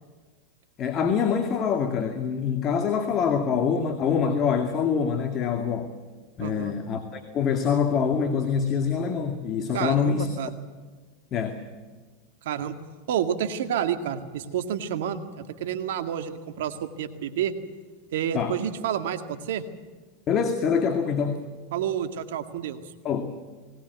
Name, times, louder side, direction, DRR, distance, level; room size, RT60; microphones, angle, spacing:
voice 1, 0.8-5.9 6.4-10.3 11.3-11.6 18.3-18.5 20.3-21.4 23.0-23.3, left 6 dB, 40° left, 6 dB, 2.1 m, -25 dB
voice 2, 6.4-6.7 9.7-10.5 12.4-12.8 13.1-17.5 18.1-19.6 21.7-22.8, right 9 dB, 75° right, 8 dB, 2.0 m, -29 dB
20.0 x 19.5 x 8.1 m, 1.4 s
hypercardioid pair, 105°, 0 cm